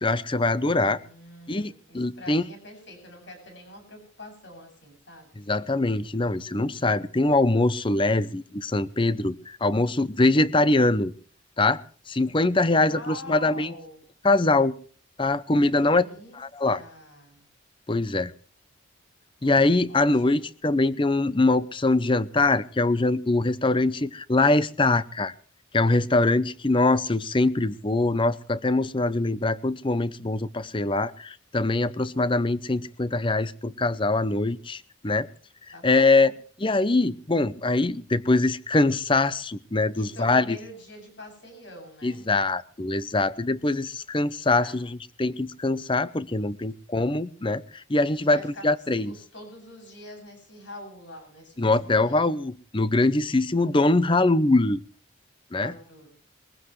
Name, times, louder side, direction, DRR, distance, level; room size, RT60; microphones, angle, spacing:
voice 1, 0.0-1.0 1.5-2.4 5.4-11.1 11.6-11.8 12.1-13.7 14.2-14.7 15.2-16.0 16.4-16.8 17.9-18.3 19.4-25.3 25.7-35.3 35.8-36.3 36.6-40.6 42.0-44.9 45.2-49.2 51.6-54.8 55.5-55.7, left 2 dB, 25° left, 16 dB, 0.6 m, -23 dB
voice 2, 0.7-5.5 12.8-14.0 15.7-17.5 19.9-20.5 35.7-36.3 39.9-42.3 44.6-44.8 48.2-48.7 49.0-52.3 55.5-56.1, left 1 dB, 60° left, 4 dB, 7.6 m, -45 dB
22.0 x 15.5 x 3.2 m, 0.43 s
head